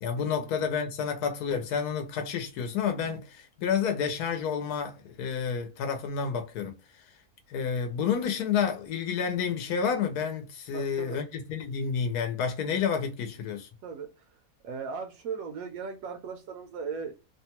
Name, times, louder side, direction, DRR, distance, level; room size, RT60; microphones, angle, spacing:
voice 1, 0.0-6.8 7.5-13.7, left 6 dB, 85° left, 1.1 m, -30 dB
voice 2, 10.7-11.2 13.8-14.3 14.6-17.1, right 5 dB, 75° right, 1.0 m, -37 dB
2.9 x 2.2 x 2.8 m
omnidirectional pair, 1.6 m